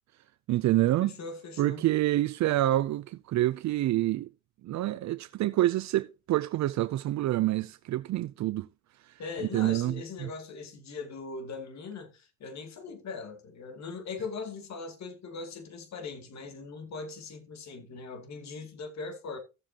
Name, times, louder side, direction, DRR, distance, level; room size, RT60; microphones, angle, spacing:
voice 1, 0.5-1.1 1.6-4.3 4.6-8.7 9.5-10.3, right 15 dB, 65° right, 0.5 m, -27 dB
voice 2, 1.0-1.8 9.2-19.4, left 4 dB, 65° left, 2.5 m, -40 dB
15.0 x 7.4 x 2.9 m
cardioid pair, 90°, 30 cm